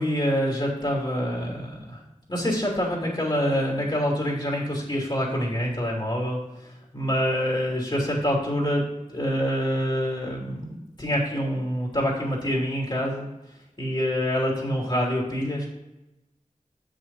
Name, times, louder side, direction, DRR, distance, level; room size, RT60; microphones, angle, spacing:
voice 1, 0.0-2.0 2.3-8.8 9.1-10.7 11.0-13.3 13.8-15.7, equal, 35° left, -2 dB, 2.8 m, -26 dB
7.2 x 6.5 x 4.0 m, 0.95 s
wide cardioid pair, 50°, 13 cm